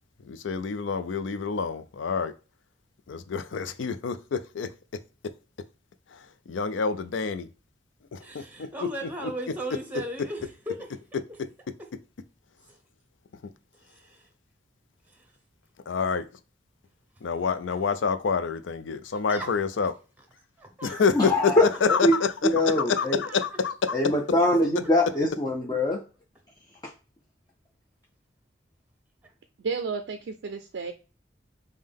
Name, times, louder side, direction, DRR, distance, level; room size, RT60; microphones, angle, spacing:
voice 1, 0.2-2.3 3.1-4.7 6.5-7.5 8.1-8.7 9.2-9.3 15.9-16.3 17.2-19.9 20.8-21.5 21.8-22.5 22.8-24.0, left 5 dB, 80° left, 0.4 m, -27 dB
voice 2, 8.2-11.0 11.8-11.9 13.8-14.3 15.1-15.3 17.7-17.8 19.1-19.5 19.8-19.9 20.6-21.0 21.8-21.9 22.2-22.3 22.6-23.6 29.2-29.3, right 1 dB, 10° right, 0.8 m, -38 dB
voice 3, 21.1-22.2 22.4-23.2 23.9-26.0, left 1 dB, 20° left, 0.5 m, -23 dB
voice 4, 29.6-30.9, right 5 dB, 65° right, 0.4 m, -32 dB
5.4 x 2.2 x 3.4 m
head